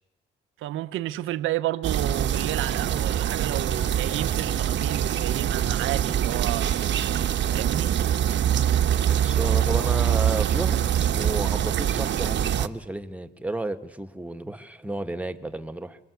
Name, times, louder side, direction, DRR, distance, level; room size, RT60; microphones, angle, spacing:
voice 1, 0.6-6.7 7.5-7.9, right 14 dB, 85° right, 1.1 m, -31 dB
sound 1, 1.8-12.7, right 10 dB, 65° right, 1.3 m, -24 dB
voice 2, 9.0-16.0, right 2 dB, 5° right, 1.9 m, -32 dB
26.5 x 23.0 x 8.3 m
cardioid pair, 90°, 20 cm